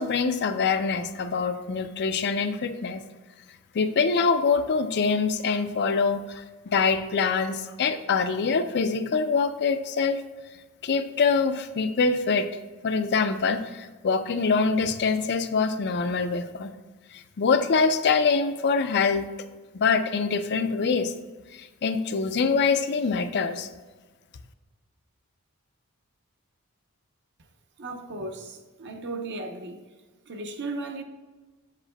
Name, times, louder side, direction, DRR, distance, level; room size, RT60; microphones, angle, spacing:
voice 1, 0.0-3.0 3.7-10.2 10.8-12.5 12.8-16.7 17.1-19.3 19.7-21.1 21.5-23.7, left 5 dB, 50° left, 0.4 m, -24 dB
voice 2, 27.8-29.9 30.3-31.0, right 2 dB, 55° right, 0.7 m, -36 dB
7.7 x 7.3 x 2.2 m
head